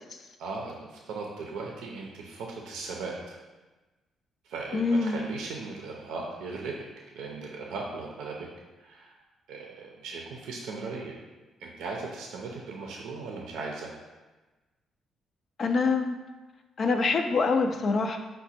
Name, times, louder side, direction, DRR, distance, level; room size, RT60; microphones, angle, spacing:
voice 1, 0.4-3.4 4.4-6.7 7.1-8.5 8.8-9.2 9.5-11.2 11.6-13.9, right 3 dB, 85° right, -1 dB, 0.5 m, -38 dB
voice 2, 4.7-5.2 15.6-16.2 16.8-18.2, left 4 dB, 50° left, 5 dB, 0.3 m, -25 dB
5.0 x 2.1 x 4.1 m, 1.2 s
cardioid pair, 90°, 0 cm